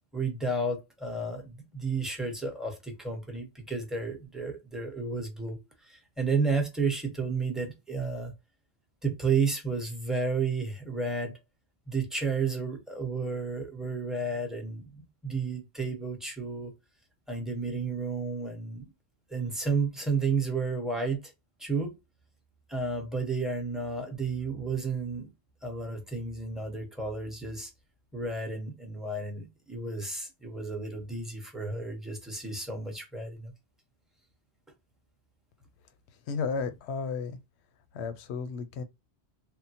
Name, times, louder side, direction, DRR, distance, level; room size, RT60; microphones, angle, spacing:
voice 1, 0.1-8.3 9.0-11.4 11.9-16.7 17.3-18.9 19.3-21.3 21.6-22.0 22.7-25.3 25.6-27.7 28.1-33.5, right 4 dB, ahead, 0.7 m, -32 dB
voice 2, 36.3-37.4 37.9-38.8, left 5 dB, 85° left, 0.9 m, -33 dB
3.6 x 2.0 x 2.6 m
omnidirectional pair, 1.1 m